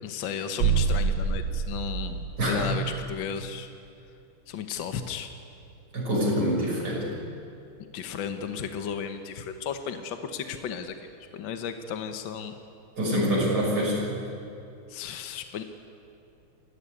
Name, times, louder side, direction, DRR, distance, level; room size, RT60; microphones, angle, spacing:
voice 1, 0.0-3.7 4.5-5.3 7.9-10.9 11.3-12.5 14.9-15.6, left 7 dB, 65° left, 7 dB, 1.8 m, -34 dB
sound 1, 0.6-3.0, right 5 dB, 80° right, 2.1 m, -27 dB
voice 2, 5.9-7.0 13.0-14.0, equal, 45° right, -4 dB, 7.1 m, -25 dB
25.5 x 14.0 x 9.8 m, 2.6 s
omnidirectional pair, 2.4 m